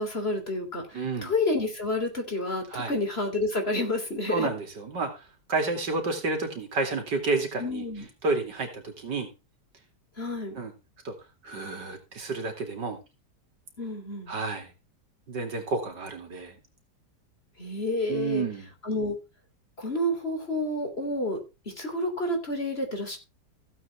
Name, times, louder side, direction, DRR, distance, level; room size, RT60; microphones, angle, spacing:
voice 1, 0.0-4.5 7.6-8.1 10.2-10.6 13.8-14.3 17.6-18.5 18.8-19.2 19.8-21.4 21.7-23.2, left 2 dB, 35° left, 5 dB, 3.4 m, -29 dB
voice 2, 0.9-1.3 2.7-2.9 4.3-5.2 5.5-7.8 8.2-9.3 10.6-10.7 11.0-11.1 11.4-13.0 14.3-14.7 15.3-16.6 18.1-18.7, right 3 dB, 80° right, 5 dB, 3.1 m, -30 dB
15.5 x 8.4 x 3.4 m, 0.27 s
omnidirectional pair, 1.9 m